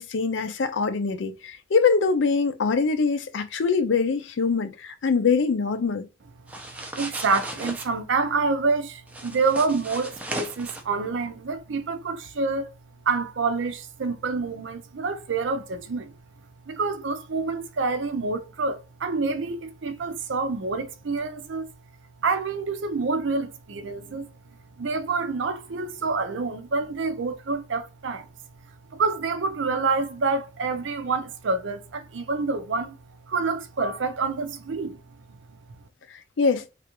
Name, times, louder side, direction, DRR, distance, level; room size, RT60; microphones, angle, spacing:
voice 1, 0.0-6.1 36.1-36.6, left 4 dB, 75° left, 0.5 m, -23 dB
sound 1, 6.5-7.9 9.1-10.8, right 1 dB, 10° right, 0.4 m, -36 dB
voice 2, 7.0-12.7 13.1-16.1 16.7-21.7 22.2-24.3 24.8-28.3 28.9-33.0 33.3-35.0 35.3-35.4, right 4 dB, 75° right, 0.5 m, -27 dB
3.3 x 2.4 x 2.9 m
head